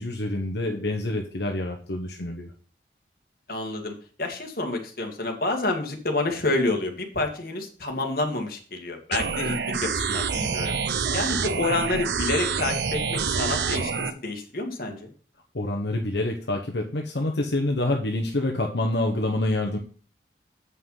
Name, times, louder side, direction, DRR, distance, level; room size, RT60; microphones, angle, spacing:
voice 1, 0.0-2.5 15.5-19.8, left 1 dB, 75° left, 2 dB, 1.1 m, -27 dB
voice 2, 3.5-10.8 11.1-15.1, left 2 dB, 55° left, 3 dB, 1.9 m, -28 dB
sound 1, 9.1-14.1, right 5 dB, 75° right, 0.7 m, -27 dB
8.2 x 5.7 x 5.5 m, 0.41 s
head